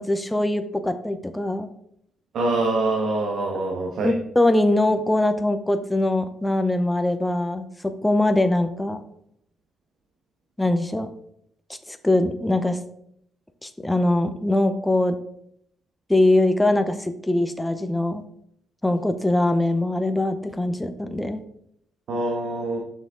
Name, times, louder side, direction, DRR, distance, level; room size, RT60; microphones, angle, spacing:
voice 1, 0.0-1.7 4.0-9.0 10.6-11.1 11.9-12.8 13.6-15.2 16.1-18.2 18.8-21.4, left 1 dB, 10° left, 8 dB, 0.7 m, -22 dB
voice 2, 2.3-4.1 22.1-22.8, right 2 dB, 70° right, 1 dB, 1.3 m, -24 dB
7.2 x 6.1 x 3.8 m, 0.72 s
cardioid pair, 90°, 0 cm